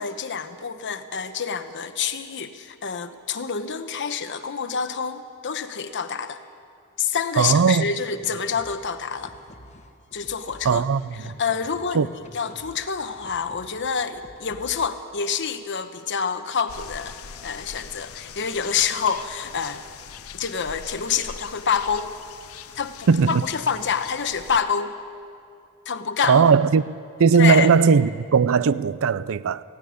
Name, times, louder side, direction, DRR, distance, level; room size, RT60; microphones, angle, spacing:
voice 1, 0.0-6.4 7.0-9.3 10.1-10.8 11.4-17.2 17.4-19.8 20.3-22.1 22.8-24.9 25.9-26.4 27.3-27.7, left 6 dB, 55° left, 1.0 m, -27 dB
voice 2, 7.4-7.9 10.6-11.4 11.9-12.1 23.1-23.4 26.2-29.6, right 5 dB, 65° right, 0.5 m, -18 dB
sound 1, 8.1-15.0, left 1 dB, 30° left, 1.4 m, -48 dB
sound 2, 16.7-24.6, left 7 dB, 70° left, 0.7 m, -42 dB
16.5 x 16.5 x 9.6 m
head